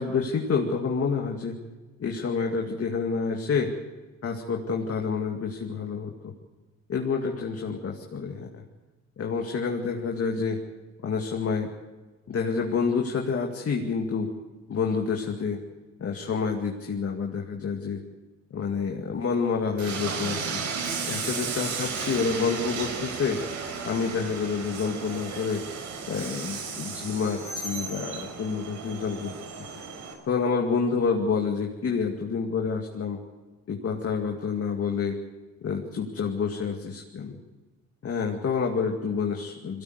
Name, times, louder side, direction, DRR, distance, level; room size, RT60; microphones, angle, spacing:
voice 1, 0.0-1.6 2.0-3.7 4.2-6.3 6.9-8.6 9.2-10.6 11.0-11.7 12.3-14.3 14.7-15.6 16.0-18.0 18.5-20.6 21.1-23.4 23.8-25.6 26.0-29.3 30.2-33.2 33.7-35.2 35.6-37.4 38.0-39.8, left 5 dB, 50° left, 1 dB, 2.3 m, -28 dB
Train, 19.8-30.1, right 5 dB, 75° right, 4.5 m, -34 dB
22.0 x 17.5 x 8.1 m, 1.3 s
cardioid pair, 90°, 30 cm